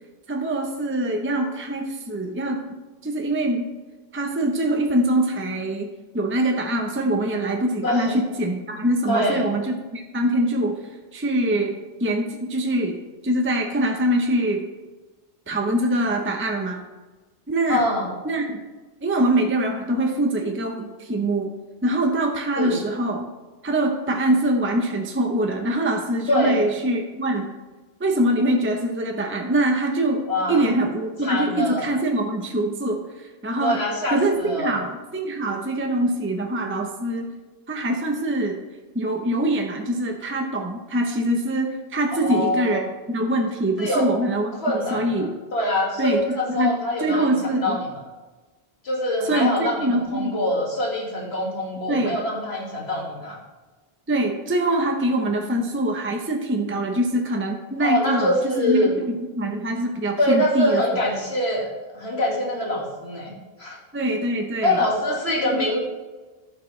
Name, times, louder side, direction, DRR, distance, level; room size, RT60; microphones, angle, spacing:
voice 1, 0.3-2.7 3.0-3.8 4.1-5.9 6.1-10.8 11.1-13.0 13.2-14.6 15.5-16.8 17.5-17.8 18.2-18.7 19.0-21.5 21.8-23.3 23.6-27.5 28.0-33.8 34.1-37.3 37.7-38.6 38.9-42.8 43.1-44.5 44.9-45.3 46.0-46.7 47.0-47.8 49.2-50.3 51.9-52.2 54.1-58.9 59.3-60.8 63.9-64.8 65.4-65.6, right 1 dB, 15° right, 2 dB, 0.7 m, -24 dB
voice 2, 7.8-8.2 9.1-9.4 17.7-18.1 22.5-22.8 26.3-26.6 30.3-30.7 31.2-31.9 33.6-34.8 42.1-42.9 43.8-44.1 44.6-48.0 48.8-53.4 57.8-58.9 60.2-63.8 64.6-65.8, left 1 dB, 85° left, -2 dB, 2.3 m, -24 dB
13.0 x 5.9 x 3.2 m, 1.2 s
omnidirectional pair, 1.1 m